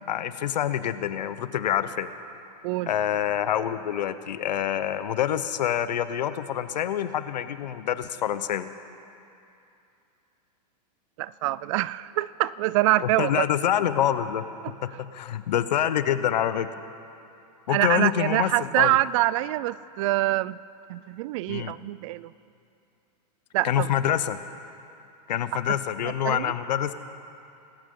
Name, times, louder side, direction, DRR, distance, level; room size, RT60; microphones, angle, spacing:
voice 1, 0.1-2.1 2.9-8.7 13.0-14.4 14.8-16.7 17.7-19.0 21.5-21.8 23.6-24.4 25.3-26.9, left 10 dB, 85° left, 12 dB, 0.9 m, -26 dB
voice 2, 11.2-13.5 14.6-14.7 17.7-20.6 20.9-22.3 23.5-24.1 26.2-26.4, right 17 dB, 50° right, 20 dB, 0.4 m, -25 dB
26.0 x 14.0 x 3.8 m, 2.7 s
hypercardioid pair, 130°, 21 cm